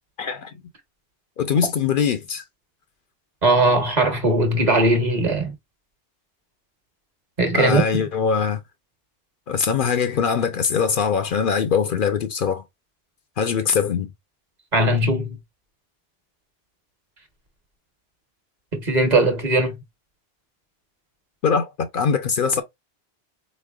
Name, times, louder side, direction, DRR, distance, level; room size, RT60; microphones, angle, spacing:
voice 1, 0.2-0.5 1.4-2.4 7.5-8.6 9.5-12.6 13.4-14.1 21.4-22.6, left 6 dB, 60° left, 0.7 m, -22 dB
voice 2, 3.4-5.5 7.4-8.1 14.7-15.4 18.7-19.8, right 2 dB, 45° right, 1.1 m, -19 dB
4.2 x 3.2 x 2.3 m
omnidirectional pair, 1.0 m